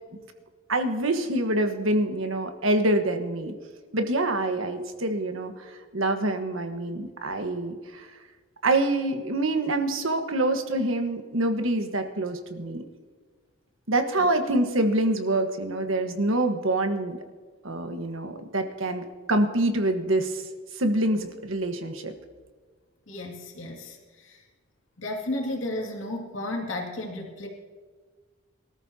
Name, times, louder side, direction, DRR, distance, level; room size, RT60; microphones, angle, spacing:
voice 1, 0.7-3.5 3.9-8.1 8.6-12.8 13.9-17.2 17.6-19.0 19.3-20.4 20.7-22.1, right 1 dB, 85° right, 6 dB, 1.4 m, -26 dB
voice 2, 23.1-24.4 25.0-27.5, left 1 dB, 80° left, 0 dB, 2.3 m, -33 dB
23.0 x 13.5 x 2.9 m, 1.5 s
head